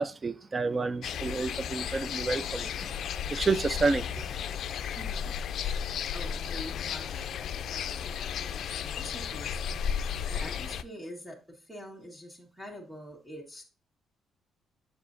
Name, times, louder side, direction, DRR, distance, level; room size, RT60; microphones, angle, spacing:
voice 1, 0.0-2.7 3.3-4.2, right 4 dB, 30° right, 0.5 m, -29 dB
sound 1, 1.0-10.8, left 8 dB, 70° left, 0.4 m, -34 dB
voice 2, 4.9-5.3 6.1-13.6, equal, 10° right, 1.8 m, -46 dB
7.6 x 4.8 x 2.6 m
cardioid pair, 90°, 0 cm